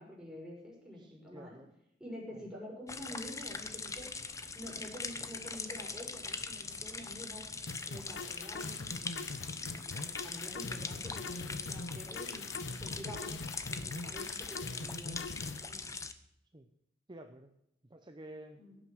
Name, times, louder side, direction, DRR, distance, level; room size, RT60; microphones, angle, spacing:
voice 1, 0.0-1.6 2.0-4.1 4.5-7.5 7.9-9.3 9.6-13.4 13.7-15.9 18.6-18.8, equal, 5° right, -4 dB, 5.6 m, -48 dB
voice 2, 0.9-1.7 2.3-2.4 16.5-16.7 17.1-17.6 17.8-18.6, right 1 dB, 25° right, 6 dB, 0.8 m, -51 dB
sound 1, 2.9-16.1, left 4 dB, 15° left, 0.8 m, -42 dB
sound 2, 7.7-15.6, left 3 dB, 80° left, 0.8 m, -42 dB
17.0 x 9.2 x 6.2 m, 0.79 s
head